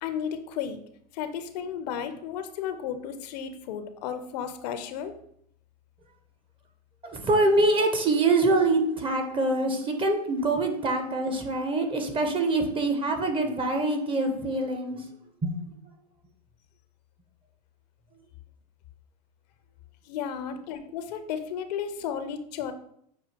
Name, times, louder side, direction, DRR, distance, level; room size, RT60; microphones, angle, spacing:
voice 1, 0.0-0.8 1.1-5.2 20.1-22.7, left 8 dB, 75° left, 9 dB, 0.5 m, -33 dB
voice 2, 7.1-15.0 15.4-15.5, right 2 dB, 25° right, 5 dB, 0.7 m, -24 dB
6.2 x 2.4 x 2.8 m, 0.68 s
hypercardioid pair, 105°, 21 cm